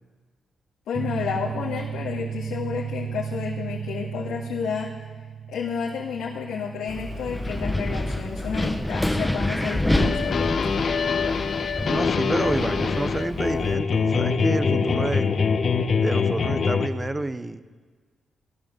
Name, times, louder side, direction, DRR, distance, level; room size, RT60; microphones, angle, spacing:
voice 1, 0.9-4.9 5.5-10.5, left 6 dB, 90° left, -5 dB, 2.1 m, -31 dB
sound 1, 0.9-12.1, right 8 dB, 40° right, 0.9 m, -36 dB
Wind, 6.9-13.7, left 1 dB, 5° left, 1.0 m, -27 dB
sound 2, 10.0-16.9, left 5 dB, 55° left, 1.0 m, -24 dB
voice 2, 11.8-15.4 16.0-17.6, right 2 dB, 20° right, 13 dB, 0.8 m, -29 dB
17.0 x 11.5 x 6.7 m, 1.5 s
cardioid pair, 80°, 0 cm